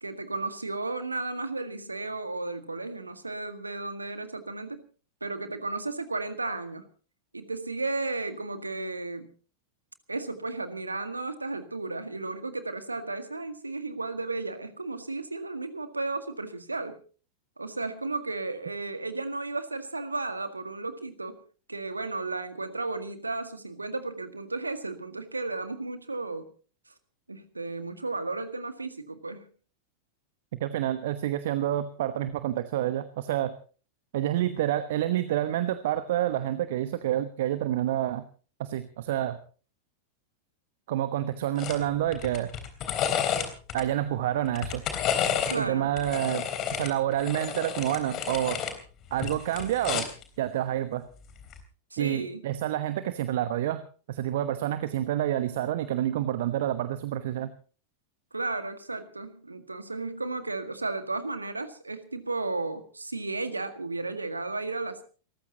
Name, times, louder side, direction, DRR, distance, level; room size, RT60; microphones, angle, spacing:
voice 1, 0.0-4.8 5.2-6.9 7.3-9.3 10.1-17.0 17.6-21.4 21.7-26.5 27.3-29.5 45.5-45.9 51.9-52.4 58.3-65.0, right 3 dB, 80° right, 9 dB, 1.8 m, -34 dB
voice 2, 30.5-33.5 34.1-38.2 38.6-39.4 40.9-42.5 43.7-44.8 45.5-48.6 49.1-50.1 50.4-51.0 52.0-53.8 54.1-57.5, right 12 dB, 55° right, 12 dB, 1.1 m, -28 dB
sound 1, 41.6-41.8 42.1-43.8 44.5-45.6 46.0-48.8 49.1-50.2 51.4-51.6, left 8 dB, 35° left, 3.5 m, -31 dB
29.5 x 14.5 x 2.9 m, 0.38 s
figure-of-eight pair, 90°, 0 cm